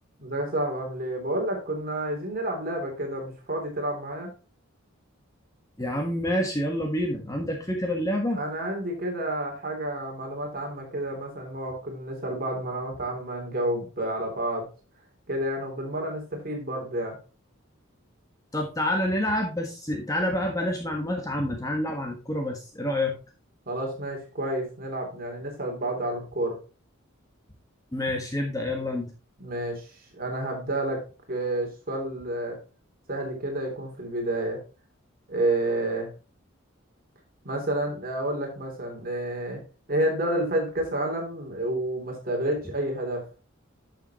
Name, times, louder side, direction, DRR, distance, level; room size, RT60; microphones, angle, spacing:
voice 1, 0.2-4.3 8.3-14.7 15.3-17.2 23.7-26.6 29.4-29.9 30.2-32.6 33.1-34.6 35.3-36.1 37.4-39.6 39.9-43.2, right 1 dB, 45° right, 2 dB, 3.0 m, -30 dB
voice 2, 5.8-8.4 18.5-23.1 27.9-29.1, left 1 dB, 15° left, 2 dB, 1.4 m, -28 dB
11.0 x 6.8 x 3.0 m, 0.33 s
head